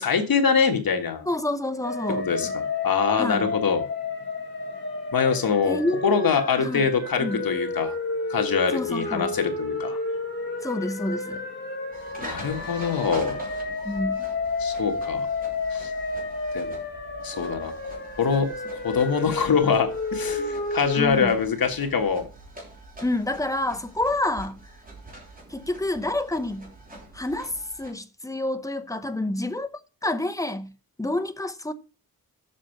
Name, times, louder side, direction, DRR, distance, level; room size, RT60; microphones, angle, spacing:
voice 1, 0.0-1.3 2.2-3.8 5.1-5.8 6.0-7.9 8.3-10.0 12.2-13.4 14.6-15.3 15.7-15.9 16.5-16.7 17.2-17.7 18.2-22.3, left 6 dB, 75° left, 1.7 m, -24 dB
voice 2, 1.3-2.3 3.2-3.5 5.7-6.3 6.6-6.8 7.2-7.4 8.7-9.3 10.6-11.4 13.8-14.2 21.0-21.3 23.0-24.6 25.5-26.7 27.1-27.5 27.8-29.7 30.0-30.7 31.0-31.7, left 1 dB, 10° left, 0.8 m, -28 dB
sound 1, 1.8-21.1, left 3 dB, 30° left, 2.7 m, -31 dB
sound 2, 11.9-27.9, right 1 dB, 25° right, 3.3 m, -44 dB
7.4 x 6.5 x 5.9 m
wide cardioid pair, 145°, 36 cm